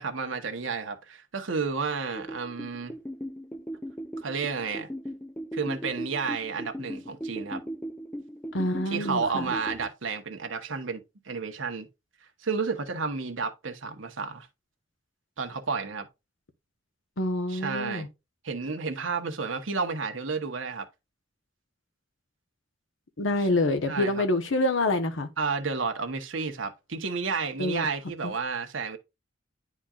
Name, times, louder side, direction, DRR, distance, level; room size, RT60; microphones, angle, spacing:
voice 1, 0.0-2.9 4.2-4.9 5.5-7.6 8.9-11.9 12.4-14.5 15.4-16.1 17.5-18.1 18.4-20.9 23.9-24.2 25.4-29.0, right 5 dB, 80° right, 1.2 m, -31 dB
sound 1, 2.1-9.9, equal, 10° left, 0.5 m, -38 dB
voice 2, 8.5-9.5 17.2-18.1 23.2-25.3 27.6-27.9 28.2-28.3, left 2 dB, 80° left, 1.1 m, -26 dB
10.0 x 4.4 x 2.5 m
head